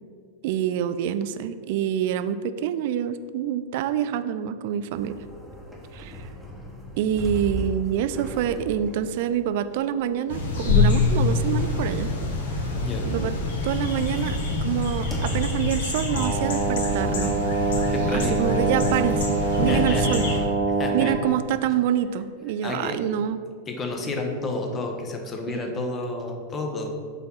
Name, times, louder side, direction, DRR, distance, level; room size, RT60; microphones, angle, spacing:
voice 1, 0.4-5.2 5.9-6.3 7.0-12.1 13.0-13.3 13.6-17.4 18.1-20.3 20.9-23.4 25.5-25.6, right 10 dB, 50° right, 12 dB, 0.3 m, -26 dB
sound 1, 4.9-15.9 16.4-16.5 17.9-18.8, right 1 dB, ahead, 1.2 m, -38 dB
sound 2, 10.3-20.4, left 3 dB, 60° left, 1.1 m, -26 dB
voice 2, 12.8-13.1 17.9-18.4 19.7-20.2 20.8-21.1 22.6-23.0 23.7-26.9, left 2 dB, 25° left, 3 dB, 0.9 m, -30 dB
sound 3, 16.2-21.2, right 3 dB, 20° right, 0.8 m, -25 dB
5.4 x 4.3 x 5.6 m, 2.1 s
figure-of-eight pair, 90°, 0 cm